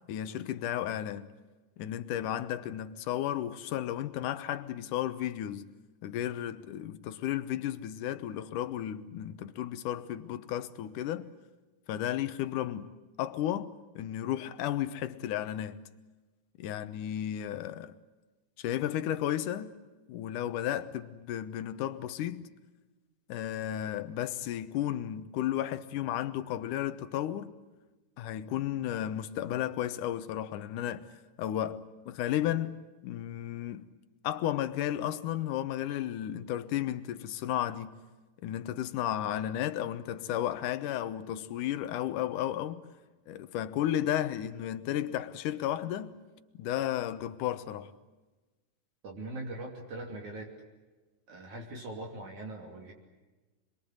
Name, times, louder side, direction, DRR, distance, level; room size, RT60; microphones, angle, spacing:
voice 1, 0.1-1.3 1.8-5.7 6.0-11.3 11.9-12.9 13.2-15.8 16.6-18.0 18.6-19.7 20.1-22.5 23.3-27.6 28.2-31.1 31.4-32.8 33.0-33.9 34.2-38.0 38.4-42.8 43.3-46.2 46.6-47.9, left 11 dB, 75° left, 2.5 m, -33 dB
voice 2, 49.0-50.5 51.3-52.9, right 2 dB, 60° right, 4.3 m, -41 dB
26.5 x 22.5 x 8.1 m
omnidirectional pair, 3.8 m